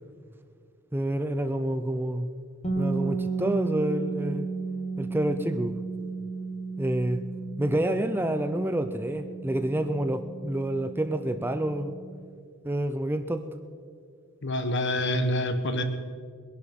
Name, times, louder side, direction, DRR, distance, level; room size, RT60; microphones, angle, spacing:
voice 1, 0.9-2.3 2.8-4.5 5.0-5.8 6.8-7.2 7.6-12.0 12.6-13.4, right 1 dB, 10° right, 9 dB, 0.5 m, -28 dB
sound 1, 2.6-12.4, right 4 dB, 30° left, 1.6 m, -34 dB
voice 2, 14.4-15.8, left 1 dB, 55° left, 8 dB, 1.2 m, -26 dB
21.0 x 11.0 x 5.4 m, 2.1 s
head